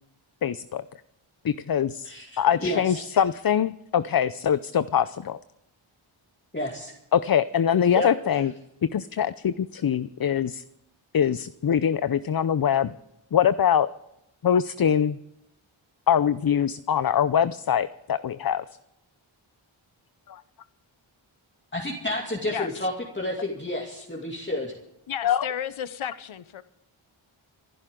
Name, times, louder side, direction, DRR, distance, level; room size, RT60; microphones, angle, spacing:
voice 1, 0.4-0.8 1.4-5.4 7.1-8.5 8.9-10.6 11.1-12.9 13.3-13.9 14.4-15.2 16.1-18.6 20.3-20.4 25.2-25.5, left 8 dB, 45° left, 14 dB, 0.6 m, -23 dB
voice 2, 2.0-3.0 6.5-6.9 7.9-8.1 21.7-24.7, left 1 dB, 20° left, -3 dB, 2.7 m, -30 dB
voice 3, 25.1-26.6, left 9 dB, 70° left, 14 dB, 0.9 m, -33 dB
26.0 x 11.0 x 3.8 m, 0.83 s
wide cardioid pair, 55°, 50 cm